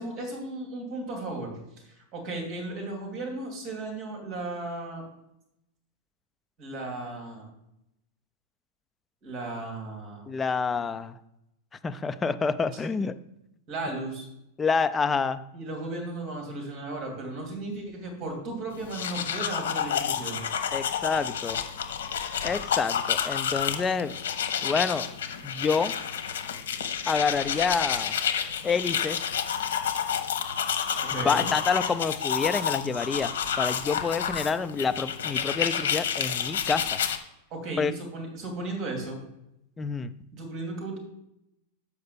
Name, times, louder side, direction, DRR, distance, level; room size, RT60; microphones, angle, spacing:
voice 1, 0.0-1.5 1.8-5.0 6.6-7.5 9.2-10.2 13.7-14.3 15.5-20.4 31.0-31.5 37.5-39.2 40.3-41.0, right 2 dB, 25° right, 1 dB, 2.7 m, -35 dB
voice 2, 10.3-11.1 11.8-13.2 14.6-15.4 20.7-21.6 22.4-24.1 24.6-25.1 25.4-25.9 27.1-28.2 28.6-29.2 31.1-37.0 37.8-37.9 39.8-40.1, left 5 dB, 10° left, 10 dB, 0.3 m, -28 dB
sound 1, 18.8-37.2, left 8 dB, 90° left, 1.0 m, -30 dB
6.8 x 5.3 x 6.7 m, 0.84 s
supercardioid pair, 170°, 0 cm